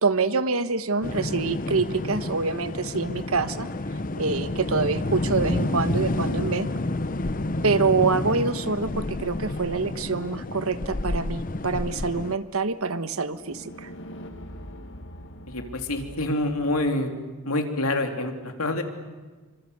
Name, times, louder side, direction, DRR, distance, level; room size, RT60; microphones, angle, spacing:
voice 1, 0.0-3.7 4.2-6.7 7.6-13.9, right 4 dB, 85° right, 12 dB, 1.3 m, -26 dB
sound 1, 1.0-12.4, left 2 dB, 40° left, 0.9 m, -29 dB
sound 2, 11.3-16.9, equal, 60° left, 2.2 m, -44 dB
voice 2, 15.5-17.1 17.4-18.8, left 2 dB, 90° left, 5 dB, 3.2 m, -26 dB
28.0 x 25.0 x 8.1 m, 1.3 s
head